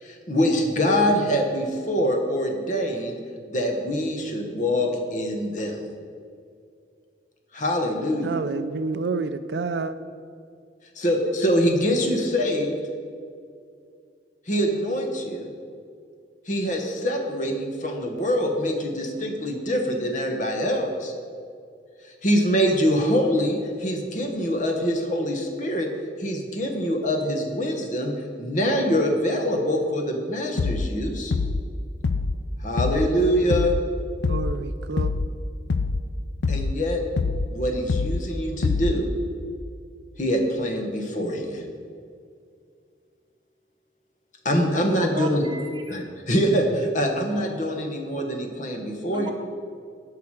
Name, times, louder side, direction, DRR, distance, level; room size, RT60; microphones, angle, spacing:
voice 1, 0.0-3.2 3.5-5.9 7.5-8.3 10.9-12.8 14.5-15.5 16.5-21.1 22.2-25.9 26.2-31.3 32.6-33.8 36.5-37.0 37.5-39.1 40.2-41.6 44.4-45.4 45.9-49.3, equal, 45° left, 3 dB, 1.3 m, -24 dB
voice 2, 8.2-9.9 34.3-35.1, right 4 dB, 75° right, 11 dB, 0.5 m, -29 dB
sound 1, 30.6-31.0 31.3-31.7 32.0-32.4 32.8-33.1 33.5-33.9 34.2-34.6 35.0-35.3 35.7-36.1 36.4-36.8 37.2-37.5 37.9-38.3 38.6-39.0, left 4 dB, 75° left, 0.5 m, -25 dB
voice 3, 45.0-46.1 49.1-49.3, right 4 dB, 25° right, 4 dB, 0.9 m, -36 dB
17.5 x 5.8 x 4.9 m, 2.3 s
head